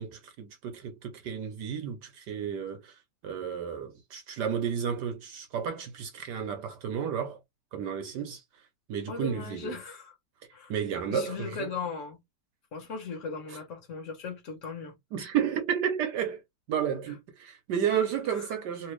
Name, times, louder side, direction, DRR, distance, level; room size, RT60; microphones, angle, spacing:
voice 1, 0.0-7.4 7.7-9.8 10.7-11.7 13.5-13.6 15.1-16.4 16.7-18.9, right 8 dB, 70° right, 1.0 m, -32 dB
voice 2, 9.1-10.1 10.5-10.7 11.1-12.2 12.7-14.9, left 5 dB, 45° left, 1.2 m, -37 dB
3.3 x 2.6 x 3.1 m
omnidirectional pair, 2.4 m